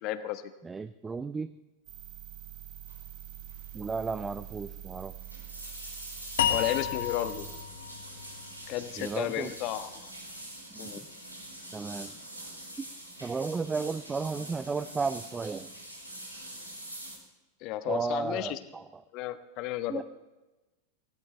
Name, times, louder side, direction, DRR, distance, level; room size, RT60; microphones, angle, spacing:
voice 1, 0.0-0.4 6.5-7.5 8.7-10.1 10.8-11.0 17.6-18.6 19.1-20.0, left 14 dB, 40° left, 12 dB, 1.2 m, -33 dB
voice 2, 0.6-1.5 3.7-5.1 9.0-9.5 10.7-11.0 11.7-12.2 12.8-12.9 13.2-15.7 17.9-19.0 19.9-20.0, right 4 dB, 15° right, 13 dB, 0.5 m, -34 dB
sound 1, 1.8-7.6, right 12 dB, 40° right, 4.6 m, -45 dB
sound 2, 2.9-3.1 3.4-3.7 4.0-4.1 5.0-17.2, right 1 dB, 90° right, 4.9 m, -45 dB
sound 3, 6.4-9.6, left 9 dB, 60° left, 1.6 m, -32 dB
24.0 x 17.5 x 3.4 m, 1.1 s
figure-of-eight pair, 90°, 0 cm